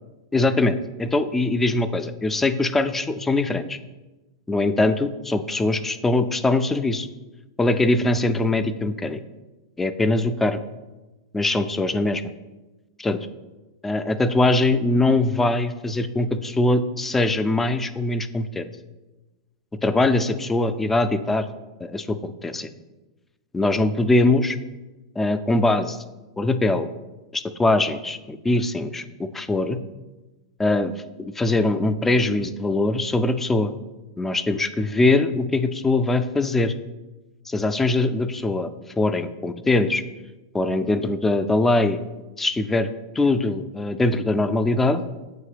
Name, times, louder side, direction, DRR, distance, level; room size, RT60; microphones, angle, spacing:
voice 1, 0.3-3.8 4.5-7.1 7.6-9.2 9.8-10.6 11.3-12.2 13.0-13.2 13.8-18.7 19.8-21.5 21.8-22.7 23.5-24.6 25.2-26.0 26.4-26.9 27.3-29.8 30.6-30.9 31.2-33.7 34.2-36.7 37.5-38.7 39.0-40.0 40.5-42.0 42.4-45.0, left 2 dB, 10° left, 11 dB, 0.4 m, -22 dB
7.6 x 2.8 x 4.9 m, 1.1 s
hypercardioid pair, 110°, 2 cm